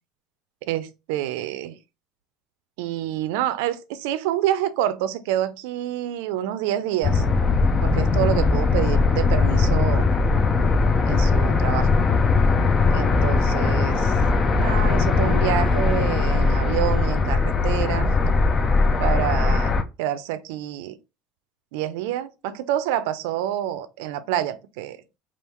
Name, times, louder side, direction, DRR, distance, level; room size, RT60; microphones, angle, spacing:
voice 1, 0.6-1.8 2.8-7.2 7.8-10.1 11.0-11.9 12.9-14.1 14.6-18.3 19.0-21.0 21.7-25.0, right 12 dB, 80° right, 0.5 m, -27 dB
sound 1, 7.0-19.8, left 4 dB, 25° left, 0.5 m, -20 dB
3.6 x 2.4 x 4.4 m
supercardioid pair, 130°, 0 cm